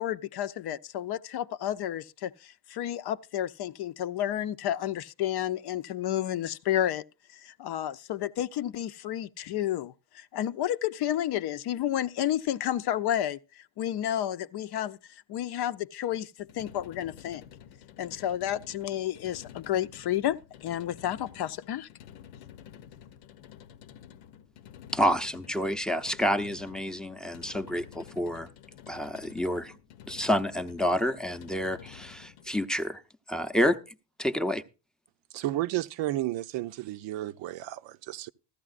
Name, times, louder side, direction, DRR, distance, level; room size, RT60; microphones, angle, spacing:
voice 1, 0.0-7.0 7.3-13.4 13.8-15.0 15.3-17.4 18.0-20.4 20.6-21.9, left 11 dB, 55° left, 0.6 m, -31 dB
sound 1, 16.4-32.6, left 9 dB, 85° left, 0.9 m, -50 dB
voice 2, 24.9-28.5 28.9-29.7 30.1-33.0 33.3-33.8 34.2-34.6, equal, ahead, 0.6 m, -28 dB
voice 3, 35.3-38.3, right 15 dB, 65° right, 0.6 m, -32 dB
15.0 x 13.5 x 2.4 m
cardioid pair, 130°, 48 cm